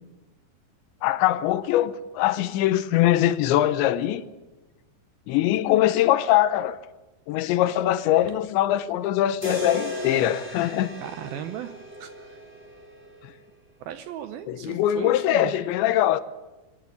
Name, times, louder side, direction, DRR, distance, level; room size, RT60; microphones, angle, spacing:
voice 1, 1.0-4.2 5.3-6.8 7.3-10.9 14.5-16.2, left 13 dB, 85° left, 3.2 m, -22 dB
sound 1, 9.4-13.5, left 1 dB, 5° right, 4.3 m, -36 dB
voice 2, 11.0-12.4 13.8-15.5, right 10 dB, 75° right, 2.3 m, -37 dB
25.0 x 13.0 x 9.8 m
omnidirectional pair, 5.1 m